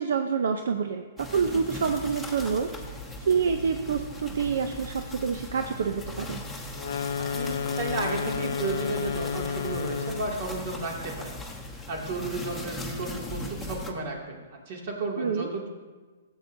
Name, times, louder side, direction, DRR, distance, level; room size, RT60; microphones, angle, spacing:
voice 1, 0.0-3.0 3.2-6.4 15.2-15.5, right 6 dB, 75° right, 6 dB, 0.6 m, -27 dB
sound 1, 1.2-13.9, left 1 dB, ahead, 1.1 m, -39 dB
sound 2, 6.7-10.4, left 6 dB, 70° left, 0.4 m, -31 dB
voice 2, 7.2-11.4 11.9-15.7, right 3 dB, 50° right, -1 dB, 2.4 m, -33 dB
14.5 x 8.1 x 2.7 m, 1.4 s
hypercardioid pair, 150°, 0 cm